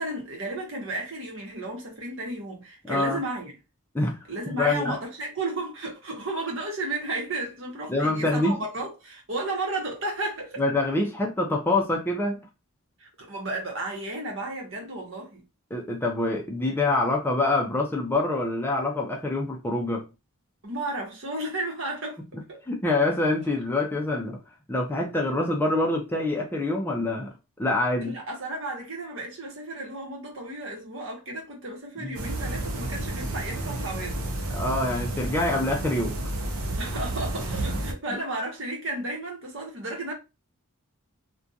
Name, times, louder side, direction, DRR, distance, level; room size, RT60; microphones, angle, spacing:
voice 1, 0.0-3.5 4.3-10.6 13.0-15.4 20.6-22.2 22.5-22.6 28.0-34.3 36.8-40.1, right 2 dB, 60° right, 1.0 m, -33 dB
voice 2, 2.9-3.2 3.9-5.0 7.9-8.6 10.6-12.4 15.7-20.1 22.7-24.4 24.7-27.3 27.6-28.2 32.0-32.2 34.5-36.3, left 2 dB, 10° left, 0.4 m, -26 dB
sound 1, 32.1-37.9, right 1 dB, 80° right, 0.6 m, -31 dB
2.5 x 2.2 x 2.6 m
head